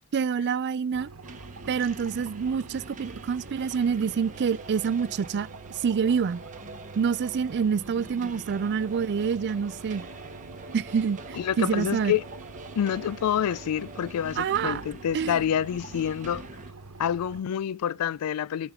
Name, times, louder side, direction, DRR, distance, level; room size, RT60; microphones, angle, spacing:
voice 1, 0.1-1.1 1.7-6.4 7.0-10.0 10.7-12.1 14.4-14.8 15.1-15.4, right 6 dB, 50° right, 0.4 m, -27 dB
sound 1, 0.9-17.4, right 3 dB, 75° right, 1.1 m, -46 dB
sound 2, 1.2-16.7, right 3 dB, 35° right, 1.0 m, -44 dB
voice 2, 11.4-12.2 12.8-16.4 17.0-18.7, left 9 dB, 80° left, 0.3 m, -27 dB
12.0 x 5.1 x 3.7 m
head